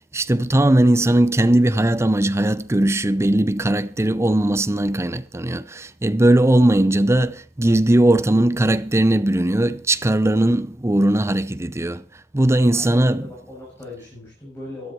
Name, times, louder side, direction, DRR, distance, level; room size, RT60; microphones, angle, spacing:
voice 1, 0.1-12.0 12.3-13.3, right 1 dB, 15° right, 0.6 m, -18 dB
voice 2, 12.6-14.9, left 2 dB, 15° left, 7.4 m, -38 dB
13.5 x 13.0 x 4.6 m
head